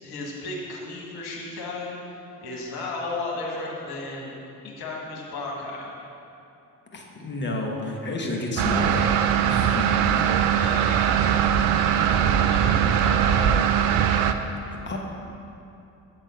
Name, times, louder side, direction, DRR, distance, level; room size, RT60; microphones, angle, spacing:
voice 1, 0.0-2.0 2.4-4.4 4.6-5.9 10.6-11.7 12.2-13.5, left 2 dB, 60° left, -4 dB, 1.6 m, -34 dB
voice 2, 6.9-9.0 9.5-10.1 14.6-15.0, left 2 dB, 25° left, 0 dB, 1.1 m, -30 dB
sound 1, 8.6-14.3, right 9 dB, 50° right, 0.5 m, -21 dB
7.5 x 4.0 x 5.1 m, 2.8 s
figure-of-eight pair, 45°, 43 cm